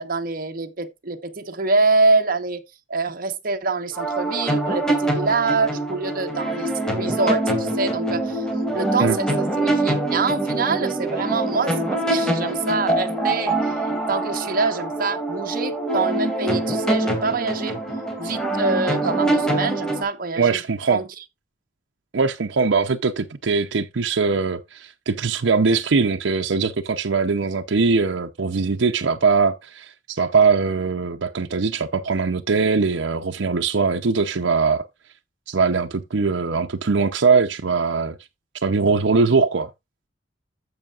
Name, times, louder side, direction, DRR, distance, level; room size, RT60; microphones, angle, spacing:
voice 1, 0.0-2.6 2.9-9.3 9.6-13.7 14.1-17.8 18.2-20.6 20.9-21.0, right 3 dB, 50° right, 1.2 m, -25 dB
sound 1, 3.9-20.0, right 1 dB, 5° left, 2.6 m, -24 dB
voice 2, 20.4-21.0 22.1-34.9 35.5-38.2 38.6-39.7, right 4 dB, 85° right, 0.7 m, -21 dB
14.5 x 5.7 x 2.4 m
head